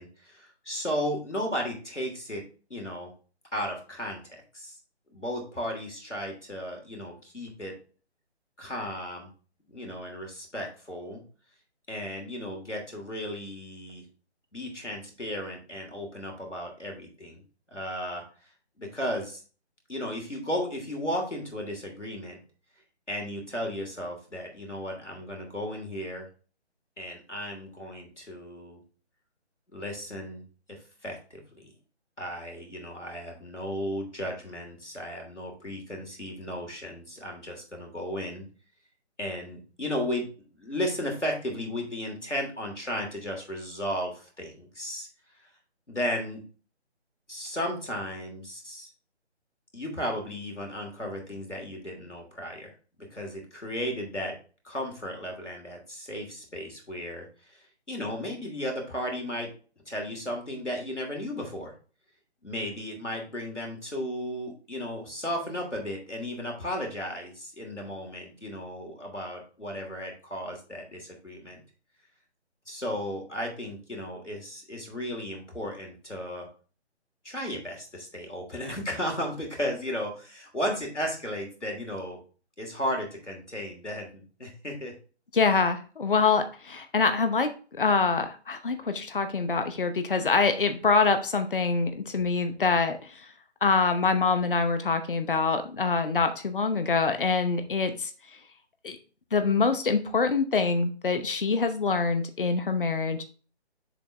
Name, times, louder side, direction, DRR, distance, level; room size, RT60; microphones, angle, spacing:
voice 1, 0.0-2.4 2.7-3.1 3.5-4.7 5.1-7.7 8.6-9.3 9.7-11.2 11.9-14.0 14.5-17.4 17.7-18.2 18.8-19.4 19.9-22.4 23.1-26.3 27.0-28.8 29.7-31.7 32.2-38.5 39.2-45.1 45.9-46.4 47.3-48.9 49.7-52.7 53.1-54.3 54.6-59.5 59.9-61.7 62.4-71.6 72.7-76.5 77.2-82.2 82.6-84.9, equal, 85° left, 1 dB, 3.0 m, -35 dB
voice 2, 85.3-93.0 93.6-98.1 98.8-99.0 99.3-103.2, left 4 dB, 50° left, 8 dB, 0.9 m, -25 dB
7.0 x 4.8 x 3.5 m, 0.38 s
figure-of-eight pair, 150°, 35 cm